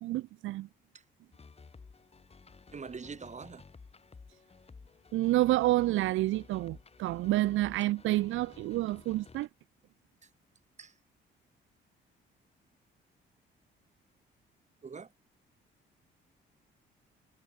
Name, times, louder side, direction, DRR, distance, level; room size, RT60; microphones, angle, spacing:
voice 1, 0.0-0.7 5.1-9.5, right 17 dB, 85° right, 0.6 m, -29 dB
sound 1, 1.3-9.5, left 4 dB, 30° left, 5.7 m, -54 dB
voice 2, 2.7-3.6 10.8-10.9 14.8-15.1, right 5 dB, 35° right, 5.3 m, -43 dB
cardioid pair, 90°, 20 cm